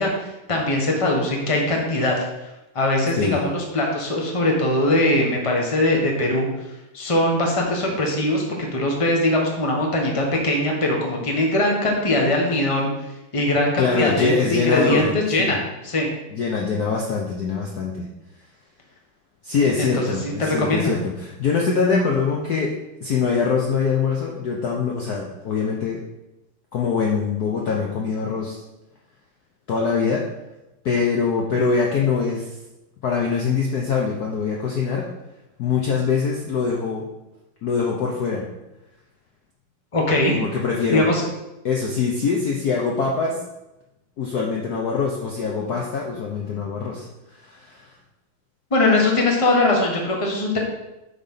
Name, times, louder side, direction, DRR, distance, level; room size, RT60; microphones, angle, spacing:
voice 1, 0.0-2.2 2.7-6.5 6.9-12.9 13.3-16.1 19.9-20.9 39.9-40.4 40.9-41.3 48.7-50.6, left 1 dB, 20° left, 0 dB, 1.2 m, -21 dB
voice 2, 13.8-15.6 16.3-18.0 19.4-22.7 23.0-26.0 26.7-28.6 29.7-30.2 30.8-32.5 33.0-35.1 35.6-37.1 37.6-38.5 40.3-41.1 41.6-43.4 44.2-47.1 47.4-47.9, left 5 dB, 60° left, -1 dB, 1.2 m, -23 dB
8.4 x 4.2 x 5.7 m, 0.96 s
omnidirectional pair, 2.4 m